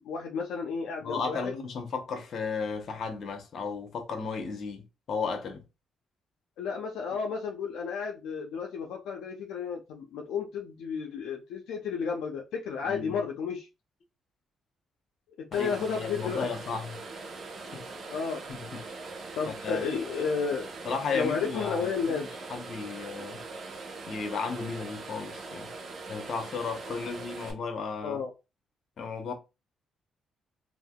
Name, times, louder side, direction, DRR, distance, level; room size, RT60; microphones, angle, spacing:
voice 1, 0.0-1.5 6.6-13.7 15.4-16.5 18.1-18.4 19.3-20.7 21.1-22.3 28.0-28.3, left 5 dB, 85° left, 0.5 m, -32 dB
voice 2, 1.0-5.6 12.9-13.2 15.5-17.0 17.7-17.8 18.5-18.8 19.5-19.8 20.8-23.4 24.1-25.7 26.1-28.2 29.0-29.3, left 5 dB, 60° left, 0.9 m, -34 dB
sound 1, 15.5-27.5, right 3 dB, 50° right, 0.8 m, -42 dB
3.3 x 2.6 x 2.2 m
cardioid pair, 90°, 0 cm